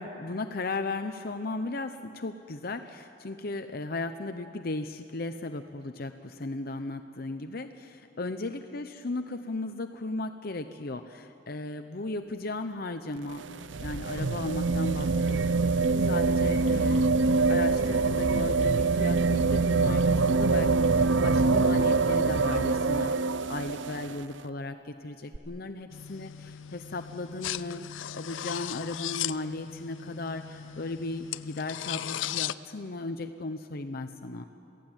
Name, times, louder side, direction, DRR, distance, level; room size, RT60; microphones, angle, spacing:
voice 1, 0.0-13.5 13.8-17.1 17.5-23.1 23.5-34.4, left 2 dB, 50° left, 7 dB, 0.8 m, -36 dB
sound 1, 13.2-24.1 25.3-25.4, right 3 dB, 75° right, 0.6 m, -25 dB
sound 2, 25.9-32.5, left 11 dB, 90° left, 0.5 m, -37 dB
28.0 x 17.0 x 9.0 m, 2.8 s
head